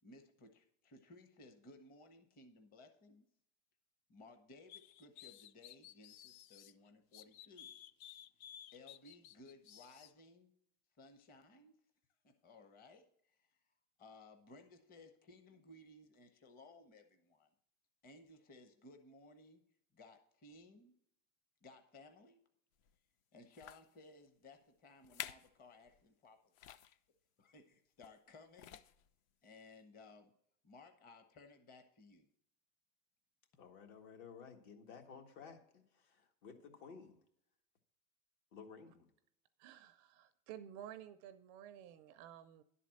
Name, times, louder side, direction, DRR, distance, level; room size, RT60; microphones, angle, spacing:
voice 1, 0.0-3.3 4.1-7.7 8.7-10.5 11.0-11.7 12.2-13.6 14.0-17.5 18.0-19.6 19.9-20.9 21.6-22.4 23.3-26.8 27.4-28.8 29.4-30.3 30.6-32.3, left 2 dB, 20° left, 7 dB, 0.8 m, -60 dB
sound 1, 4.7-6.7 7.1-10.1, left 11 dB, 85° left, 0.6 m, -56 dB
sound 2, 22.8-23.0 23.5-23.9 24.6-24.7 25.0-25.6 25.9-26.0 26.5-27.0 28.0-28.3 28.5-29.1 29.8-29.9, left 10 dB, 45° left, 0.5 m, -50 dB
voice 2, 33.6-37.2 38.5-39.1, left 6 dB, 65° left, 4 dB, 1.8 m, -55 dB
voice 3, 39.6-42.6, right 10 dB, 35° right, 10 dB, 0.4 m, -53 dB
11.0 x 4.2 x 7.5 m, 0.71 s
supercardioid pair, 150°, 41 cm